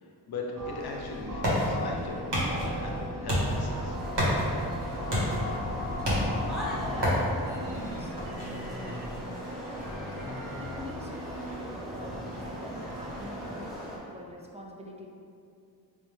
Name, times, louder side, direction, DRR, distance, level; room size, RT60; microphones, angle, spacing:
voice 1, 0.0-4.3, left 3 dB, 65° left, 0 dB, 0.6 m, -39 dB
sound 1, 0.6-13.7, left 1 dB, 55° right, 0.8 m, -38 dB
sound 2, 0.7-12.2, equal, 80° right, 1.2 m, -32 dB
sound 3, 3.5-14.0, equal, ahead, 0.8 m, -40 dB
voice 2, 6.8-13.8 14.1-15.1, equal, 15° right, -1 dB, 0.3 m, -46 dB
4.5 x 2.1 x 3.2 m, 2.5 s
wide cardioid pair, 95°, 42 cm